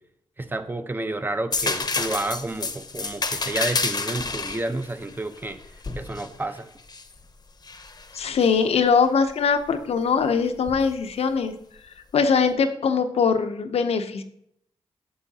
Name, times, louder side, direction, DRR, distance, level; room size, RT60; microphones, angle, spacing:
voice 1, 0.4-5.6 6.0-6.7, right 2 dB, 20° right, 10 dB, 0.7 m, -30 dB
sound 1, 1.5-7.1 7.6-8.6 10.7-10.8, left 3 dB, 40° left, 0.8 m, -29 dB
voice 2, 8.1-11.5 12.1-14.2, left 5 dB, 70° left, 8 dB, 0.7 m, -22 dB
9.4 x 6.3 x 2.8 m, 0.72 s
cardioid pair, 65°, 11 cm